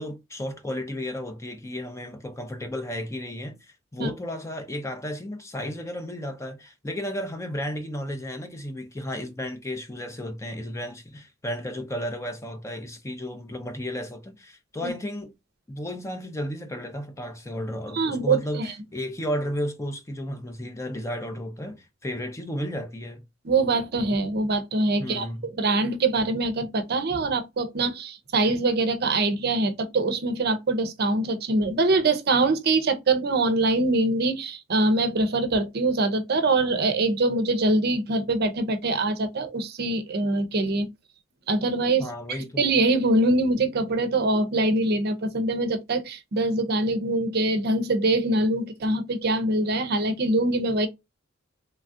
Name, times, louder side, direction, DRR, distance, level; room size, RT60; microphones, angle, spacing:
voice 1, 0.0-15.3 15.7-23.2 25.0-25.5 42.0-42.6, equal, 15° left, 0.5 m, -33 dB
voice 2, 17.9-18.7 23.4-25.3 25.6-40.9 41.5-50.9, right 2 dB, 50° right, 0.6 m, -24 dB
3.1 x 2.3 x 2.5 m
head